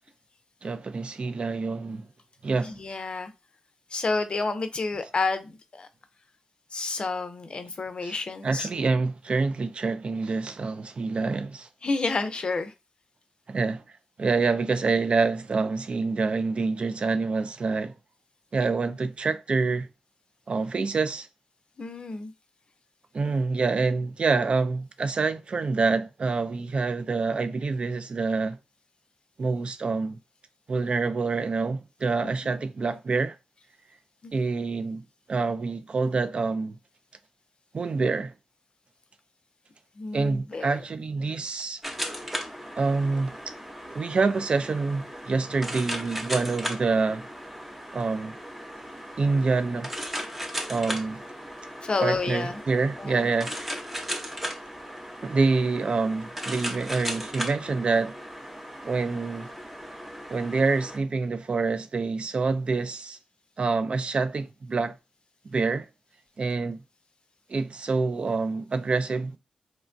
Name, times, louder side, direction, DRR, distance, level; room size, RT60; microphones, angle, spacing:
voice 1, 0.6-2.1 2.4-2.7 8.0-8.1 8.4-11.7 13.5-13.8 14.2-17.9 18.5-19.9 20.5-21.3 23.1-28.6 29.4-30.2 30.7-33.4 34.3-35.0 35.3-36.8 37.7-38.3 40.1-41.8 42.8-43.4 43.9-47.3 47.9-48.4 49.2-49.9 50.7-51.2 52.0-53.7 55.2-58.1 58.8-59.5 60.3-63.2 63.6-65.0 65.5-65.9 66.4-66.8 67.5-69.4, right 4 dB, 50° right, 0.4 m, -26 dB
voice 2, 2.6-3.3 3.9-5.9 6.7-8.7 11.8-12.7 21.8-22.3 32.2-32.3 34.2-34.3 40.0-40.8 51.8-52.6 53.0-53.3, left 3 dB, 45° left, 0.5 m, -30 dB
sound 1, 41.8-61.0, equal, 10° right, 0.6 m, -37 dB
3.0 x 2.2 x 2.5 m
cardioid pair, 60°, 2 cm